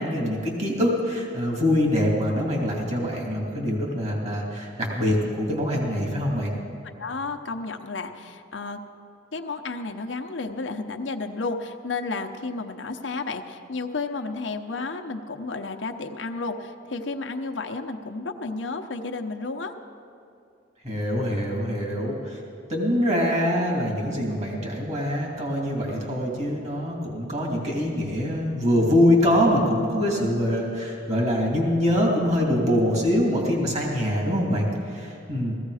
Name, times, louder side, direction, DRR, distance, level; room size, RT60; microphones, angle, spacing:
voice 1, 0.0-6.5 20.8-22.4 22.7-35.5, equal, 40° right, -1 dB, 2.6 m, -24 dB
voice 2, 6.8-8.8 9.3-19.7, left 3 dB, 80° left, 5 dB, 0.8 m, -32 dB
17.0 x 15.0 x 4.9 m, 2.6 s
head